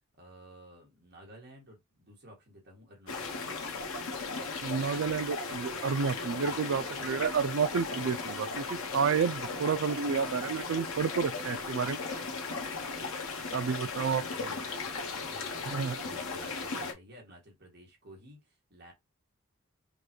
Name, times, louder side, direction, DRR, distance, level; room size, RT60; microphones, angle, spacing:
voice 1, 0.2-3.7 13.3-14.9 15.3-18.9, equal, 50° right, 1.6 m, -54 dB
sound 1, 3.1-16.9, left 4 dB, 80° left, 1.0 m, -37 dB
voice 2, 4.6-12.0 13.5-14.2 15.7-16.0, right 6 dB, 70° right, 0.4 m, -30 dB
5.2 x 2.3 x 3.0 m
head